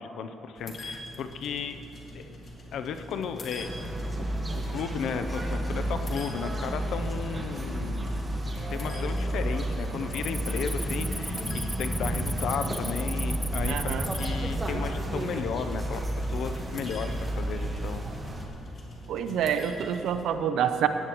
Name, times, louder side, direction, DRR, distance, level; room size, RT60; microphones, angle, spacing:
voice 1, 0.0-1.8 2.1-2.3 2.7-3.7 4.7-8.2 8.7-18.0, left 6 dB, 75° left, 8 dB, 0.6 m, -34 dB
sound 1, 0.6-20.2, left 1 dB, 50° left, 1.8 m, -45 dB
sound 2, 3.6-18.5, right 1 dB, 25° right, 1.4 m, -31 dB
Cricket, 5.3-5.7 6.2-6.6 7.2-7.3 7.9-8.5 8.8-9.1 9.4-14.3, equal, ahead, 0.3 m, -38 dB
voice 2, 13.7-14.1 19.1-20.9, right 9 dB, 80° right, 9 dB, 0.6 m, -27 dB
16.0 x 10.0 x 3.0 m, 3.0 s
cardioid pair, 90°, 0 cm